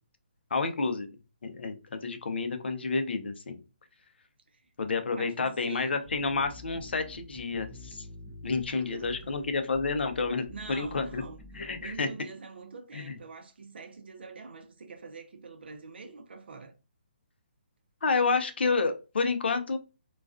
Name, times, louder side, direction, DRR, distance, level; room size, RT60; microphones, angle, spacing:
voice 1, 0.5-1.1 1.4-3.6 4.8-8.1 8.4-11.2 11.6-12.1 12.9-13.1 18.0-19.8, left 4 dB, 70° left, 0.6 m, -29 dB
voice 2, 5.1-5.9 8.7-9.4 10.5-16.7, right 4 dB, 70° right, 0.7 m, -45 dB
sound 1, 6.0-12.0, left 2 dB, 15° right, 0.4 m, -48 dB
2.4 x 2.3 x 2.4 m
hypercardioid pair, 165°, 6 cm